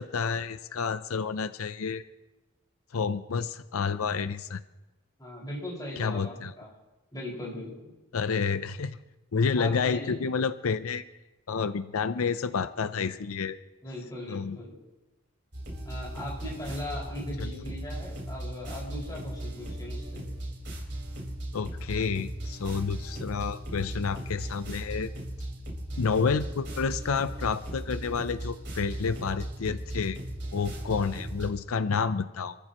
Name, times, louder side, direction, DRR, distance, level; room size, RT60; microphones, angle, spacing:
voice 1, 0.0-2.0 2.9-4.6 6.0-6.5 8.1-9.0 9.3-11.1 11.5-13.6 14.3-14.6 17.4-17.6 21.5-25.1 26.0-30.2 30.5-32.6, left 5 dB, 85° left, 12 dB, 0.6 m, -29 dB
voice 2, 5.2-6.7 7.1-7.7 9.6-10.1 13.8-14.8 15.8-20.3, left 1 dB, 20° left, -4 dB, 5.3 m, -39 dB
sound 1, 15.5-31.5, right 1 dB, 55° right, 4.7 m, -37 dB
27.5 x 14.5 x 3.0 m, 1.1 s
head